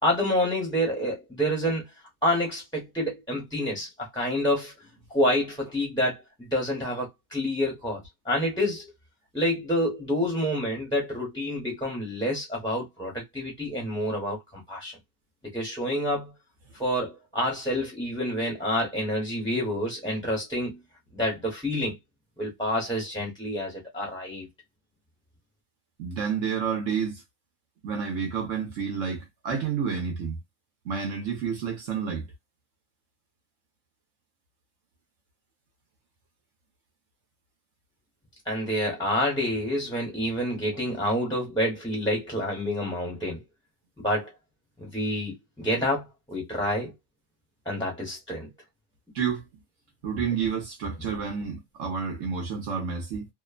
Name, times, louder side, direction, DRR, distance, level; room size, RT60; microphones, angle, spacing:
voice 1, 0.0-1.8 2.2-4.7 5.1-8.9 9.3-15.0 15.4-16.3 16.8-20.8 21.1-22.0 22.4-24.5 38.5-43.4 44.0-44.3 44.8-46.9 47.6-48.5, equal, 5° left, 0.8 m, -28 dB
voice 2, 26.0-27.2 27.8-30.4 30.8-32.3 49.1-49.5 50.0-53.3, right 6 dB, 65° right, 1.0 m, -30 dB
2.9 x 2.0 x 2.3 m
omnidirectional pair, 1.6 m